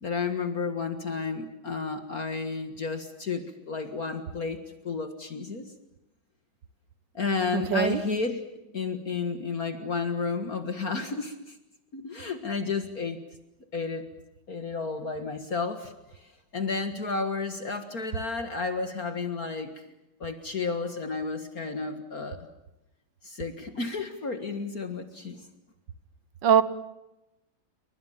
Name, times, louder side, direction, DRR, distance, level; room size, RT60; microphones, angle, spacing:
voice 1, 0.0-4.6 4.8-5.7 7.1-8.4 8.7-11.6 11.9-13.2 13.7-14.1 14.5-19.9 20.2-22.5 23.2-25.4, left 4 dB, 45° left, 8 dB, 2.0 m, -32 dB
voice 2, 7.5-8.0 26.4-26.6, right 8 dB, 60° right, 15 dB, 1.8 m, -21 dB
29.5 x 23.5 x 7.4 m, 0.93 s
omnidirectional pair, 2.3 m